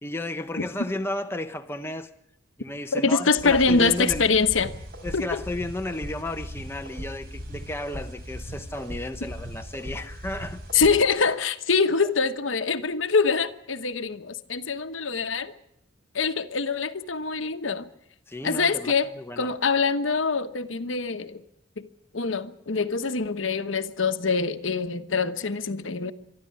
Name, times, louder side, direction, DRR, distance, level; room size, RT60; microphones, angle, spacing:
voice 1, 0.0-2.1 2.6-4.3 5.0-10.6 18.3-19.5, left 1 dB, 10° left, 0.8 m, -33 dB
voice 2, 2.9-4.7 5.1-5.4 10.7-15.5 16.1-17.9 18.4-21.4 21.8-21.9 22.1-26.1, left 4 dB, 70° left, 1.1 m, -24 dB
sound 1, 3.4-11.0, equal, 50° right, 4.9 m, -38 dB
23.5 x 13.0 x 9.5 m
head